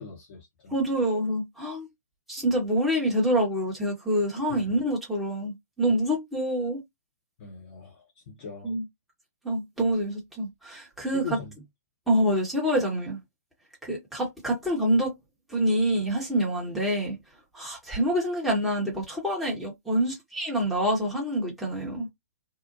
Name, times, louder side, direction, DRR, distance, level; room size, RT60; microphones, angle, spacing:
voice 1, 0.0-0.7 4.5-4.6 7.4-8.0 8.3-8.7 11.1-11.5, left 6 dB, 45° left, 0.8 m, -40 dB
voice 2, 0.7-1.9 2.3-6.8 8.6-8.8 9.4-11.4 12.1-13.2 13.8-15.1 15.5-17.1 17.5-22.1, right 1 dB, ahead, 0.9 m, -26 dB
2.7 x 2.0 x 2.5 m
figure-of-eight pair, 120°, 9 cm